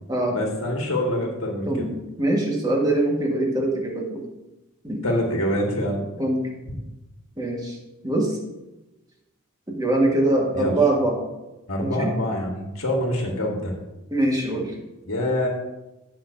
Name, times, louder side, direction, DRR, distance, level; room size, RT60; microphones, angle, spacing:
voice 1, 0.3-1.8 5.0-6.1 6.7-6.8 10.5-10.7 11.7-13.7 15.1-15.5, left 1 dB, 80° left, 1 dB, 1.6 m, -25 dB
voice 2, 2.2-4.2 4.8-5.0 6.2-6.4 7.4-7.8 8.0-8.4 9.7-11.2 11.8-12.1 14.1-14.7, right 2 dB, 20° right, -1 dB, 1.5 m, -23 dB
16.0 x 5.7 x 2.7 m, 1.0 s
head